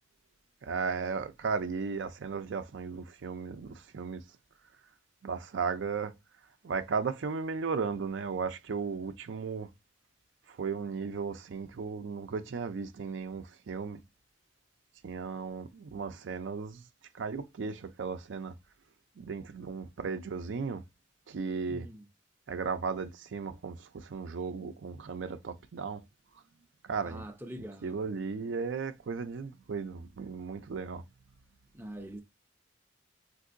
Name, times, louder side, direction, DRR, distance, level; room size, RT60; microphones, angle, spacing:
voice 1, 0.6-4.2 5.2-6.1 6.6-9.7 10.5-14.0 15.0-16.8 17.1-18.5 19.2-20.8 21.3-21.9 22.5-26.0 26.8-27.2 27.8-31.0, right 5 dB, 70° right, 0.4 m, -35 dB
voice 2, 21.7-22.1 27.0-28.1 31.7-32.2, equal, 10° right, 0.5 m, -44 dB
3.6 x 2.6 x 2.5 m
head